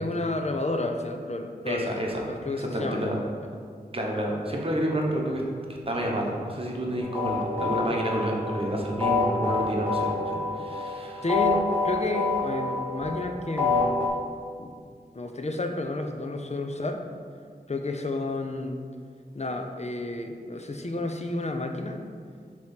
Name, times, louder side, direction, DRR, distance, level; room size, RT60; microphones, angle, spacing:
voice 1, 0.0-2.0 2.2-3.2 11.2-14.1 14.6-14.7 15.1-17.0 17.7-18.8 19.3-22.0, left 2 dB, 40° left, 5 dB, 0.6 m, -31 dB
voice 2, 1.7-2.2 2.6-3.2 3.9-5.4 5.7-11.2, right 1 dB, 35° right, -2 dB, 1.1 m, -29 dB
sound 1, 7.0-14.1, left 4 dB, 10° left, 1.6 m, -28 dB
7.5 x 3.0 x 5.8 m, 2.1 s
wide cardioid pair, 60°, 17 cm